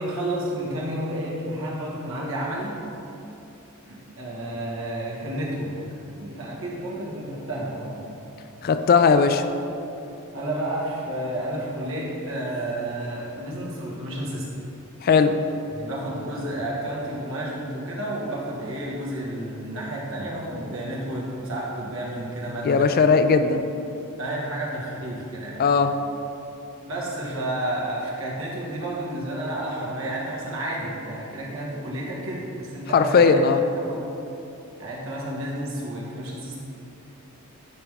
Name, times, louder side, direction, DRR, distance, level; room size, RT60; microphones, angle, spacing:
voice 1, 0.0-2.8 3.9-5.7 6.1-8.0 10.3-14.5 15.7-22.9 24.2-25.6 26.8-33.4 33.8-34.1 34.8-36.6, right 1 dB, 65° right, -5 dB, 1.4 m, -31 dB
voice 2, 8.6-9.4 15.0-15.3 22.6-23.7 25.6-25.9 32.9-33.6, left 5 dB, 45° left, 9 dB, 0.3 m, -18 dB
9.7 x 3.5 x 3.4 m, 2.8 s
head